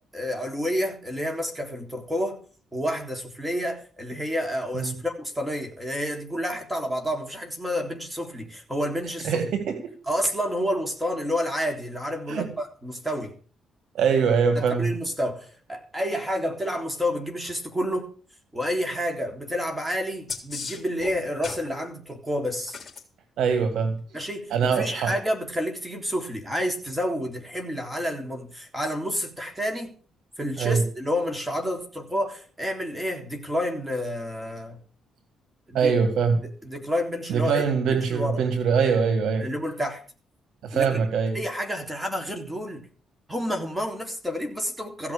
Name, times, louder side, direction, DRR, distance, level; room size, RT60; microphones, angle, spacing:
voice 1, 0.1-2.4 2.7-9.4 10.1-13.4 14.6-18.1 18.5-22.8 24.1-29.9 30.4-34.8 35.7-35.9 36.6-37.6 37.9-38.4 39.4-40.0 40.7-41.0 41.3-42.9 43.3-45.1, equal, 10° right, 3.6 m, -29 dB
voice 2, 9.2-10.0 12.3-12.5 13.9-14.9 23.4-24.0 24.5-25.1 30.6-30.8 35.7-36.4 37.3-39.5 40.6-41.4, right 6 dB, 75° right, 1.9 m, -23 dB
sound 1, 20.3-21.7 22.7-23.0 25.2-25.3, left 5 dB, 35° left, 3.3 m, -35 dB
15.5 x 5.9 x 8.6 m
cardioid pair, 90°, 0 cm